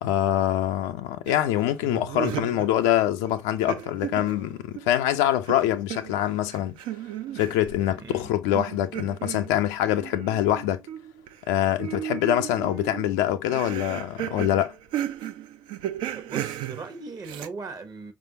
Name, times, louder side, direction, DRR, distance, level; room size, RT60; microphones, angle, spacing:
voice 1, 0.0-6.8 7.3-10.8 11.5-14.8, left 12 dB, 70° left, 0.4 m, -24 dB
sound 1, 1.3-3.0 3.2-5.0 5.4-7.9 8.5-11.5 11.8-17.5, right 12 dB, 65° right, 0.4 m, -35 dB
voice 2, 8.0-8.3 16.1-18.1, right 4 dB, 45° right, 0.9 m, -39 dB
4.9 x 2.4 x 2.7 m
figure-of-eight pair, 40°, 9 cm